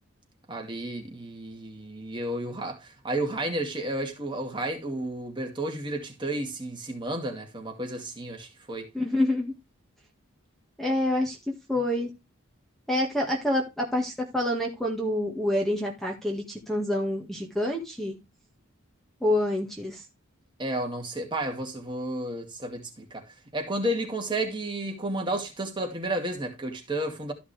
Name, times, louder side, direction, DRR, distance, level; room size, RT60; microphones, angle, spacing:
voice 1, 0.5-8.9 20.6-23.3 23.5-27.3, right 1 dB, 20° right, 2.3 m, -32 dB
voice 2, 8.9-9.5 10.8-11.4 11.7-12.1 12.9-18.2 19.2-20.0, left 1 dB, ahead, 1.8 m, -27 dB
13.5 x 5.8 x 3.4 m
head